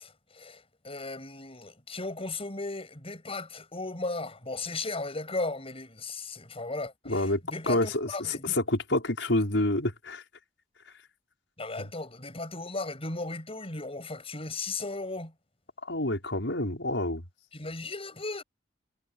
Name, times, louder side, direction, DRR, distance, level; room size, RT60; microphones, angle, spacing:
voice 1, 0.0-8.6 11.6-15.3 17.5-18.4, left 3 dB, 35° left, 7.6 m, -36 dB
voice 2, 7.0-7.4 7.7-10.2 11.8-11.9 15.9-17.2, left 1 dB, 90° left, 5.3 m, -28 dB
head